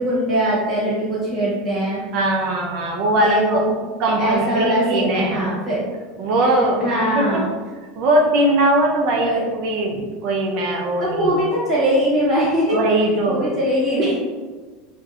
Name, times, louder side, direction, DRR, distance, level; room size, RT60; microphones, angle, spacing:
voice 1, 0.0-2.0 3.2-3.7 4.1-5.8 6.4-6.5 6.8-7.5 9.2-9.4 11.0-12.8 13.3-14.2, right 1 dB, 15° right, -9 dB, 1.0 m, -21 dB
voice 2, 2.1-3.6 4.0-5.4 6.2-7.5 8.0-11.3 12.7-13.5, right 1 dB, 45° right, 1 dB, 0.3 m, -20 dB
2.6 x 2.0 x 2.5 m, 1.4 s
supercardioid pair, 175°, 0 cm